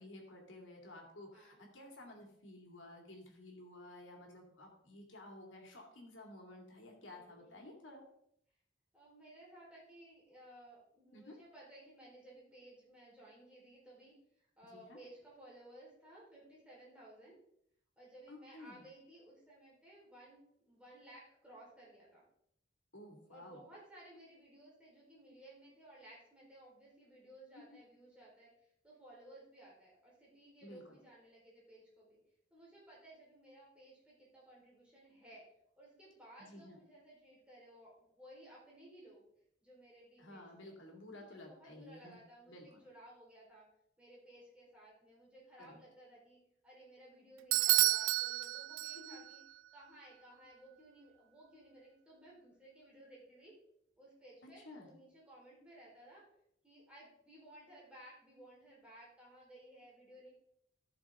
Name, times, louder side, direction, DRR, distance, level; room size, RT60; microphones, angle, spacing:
voice 1, 0.0-8.0 11.1-11.4 14.7-15.0 18.3-18.8 22.9-23.6 27.5-27.8 30.6-31.0 36.4-36.8 40.2-42.2 42.5-42.7 45.6-45.8 48.9-49.2 54.6-54.9, left 1 dB, 85° left, 1 dB, 2.7 m, -53 dB
voice 2, 7.0-7.6 8.9-17.3 18.0-20.4 20.6-22.2 23.3-32.2 32.5-35.4 35.8-39.3 39.6-40.7 41.1-43.7 44.0-46.4 46.6-49.4 49.7-53.5 54.0-56.2 56.6-60.3, right 1 dB, 5° right, -6 dB, 4.5 m, -58 dB
Bell / Doorbell, 47.5-49.4, right 19 dB, 85° right, 0.3 m, -30 dB
13.5 x 6.7 x 3.8 m, 0.72 s
head